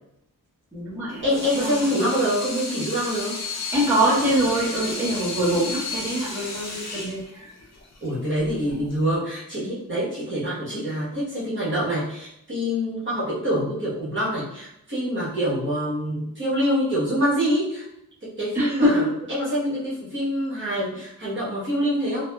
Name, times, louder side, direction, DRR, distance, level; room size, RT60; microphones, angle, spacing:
voice 1, 0.7-1.2 1.5-1.9 3.7-7.5 18.5-19.1, right 1 dB, 5° right, -10 dB, 1.2 m, -24 dB
Water tap faucet / Sink (filling or washing), 1.1-9.1, left 3 dB, 50° left, 0.6 m, -33 dB
voice 2, 1.2-3.4 8.0-17.9 18.2-22.3, equal, 35° right, -9 dB, 1.1 m, -25 dB
2.6 x 2.6 x 2.2 m, 0.79 s
wide cardioid pair, 85°, 34 cm